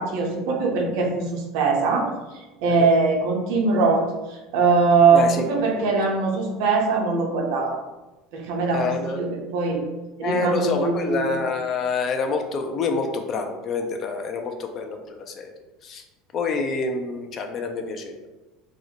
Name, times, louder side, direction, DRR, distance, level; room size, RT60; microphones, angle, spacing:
voice 1, 0.0-2.1 2.6-5.2 5.5-7.8 8.3-9.9 10.2-11.3, right 4 dB, 65° right, 1 dB, 0.5 m, -21 dB
voice 2, 5.1-5.9 8.7-9.3 10.2-15.5 15.8-16.0 16.3-18.2, left 4 dB, 45° left, 4 dB, 0.3 m, -27 dB
2.3 x 2.1 x 2.7 m, 1.1 s
hypercardioid pair, 75°, 0 cm